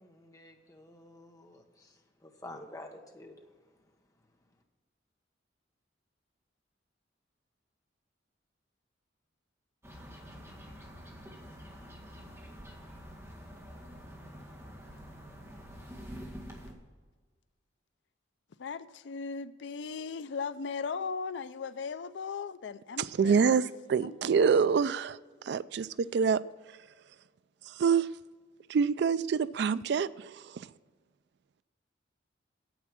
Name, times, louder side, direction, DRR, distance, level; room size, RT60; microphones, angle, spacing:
voice 1, 0.0-3.5, left 1 dB, 20° left, 2 dB, 1.2 m, -49 dB
sound 1, 9.8-16.7, equal, 15° right, 1.9 m, -47 dB
voice 2, 18.6-23.4 24.0-24.5, left 5 dB, 70° left, 14 dB, 0.4 m, -38 dB
voice 3, 23.0-25.2 25.4-26.4 27.7-28.1 28.7-30.7, right 6 dB, 60° right, 17 dB, 0.3 m, -26 dB
9.3 x 8.3 x 6.3 m, 1.4 s
head